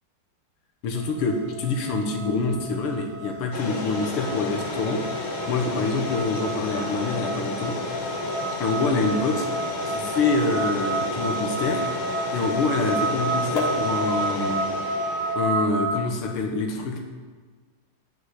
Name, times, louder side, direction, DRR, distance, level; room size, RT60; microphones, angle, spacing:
voice 1, 0.8-7.8 8.6-11.8 12.3-14.6 15.4-17.0, left 3 dB, 85° left, 2 dB, 2.1 m, -26 dB
sound 1, 0.9-15.9, right 2 dB, 65° right, 4.4 m, -31 dB
sound 2, 3.5-15.4, left 3 dB, 70° left, 2.2 m, -32 dB
10.5 x 5.2 x 8.0 m, 1.5 s
omnidirectional pair, 2.3 m